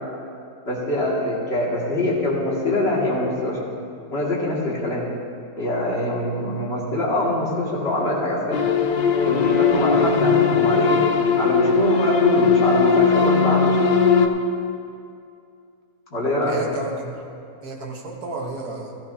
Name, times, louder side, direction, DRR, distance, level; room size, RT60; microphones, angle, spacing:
voice 1, 0.7-3.6 4.1-5.1 5.6-8.6 9.3-11.0 11.4-13.8 16.1-16.6, left 1 dB, 45° left, -5 dB, 2.5 m, -24 dB
sound 1, 8.5-14.3, left 5 dB, 65° left, 0.5 m, -18 dB
voice 2, 16.5-17.2 17.6-18.9, right 2 dB, 85° right, 0 dB, 1.8 m, -32 dB
15.0 x 14.0 x 2.8 m, 2.4 s
omnidirectional pair, 1.6 m